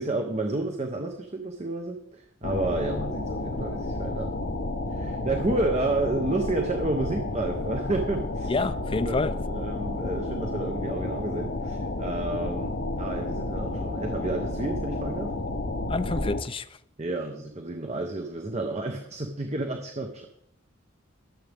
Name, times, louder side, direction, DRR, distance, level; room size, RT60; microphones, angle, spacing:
voice 1, 0.0-4.3 4.9-8.5 9.0-9.2 9.5-15.3 17.0-20.3, right 2 dB, 35° right, 1.1 m, -30 dB
sound 1, 2.4-16.4, left 2 dB, 65° left, 0.9 m, -31 dB
voice 2, 8.5-9.4 15.9-16.8, left 3 dB, 30° left, 0.5 m, -28 dB
22.5 x 7.6 x 3.6 m
head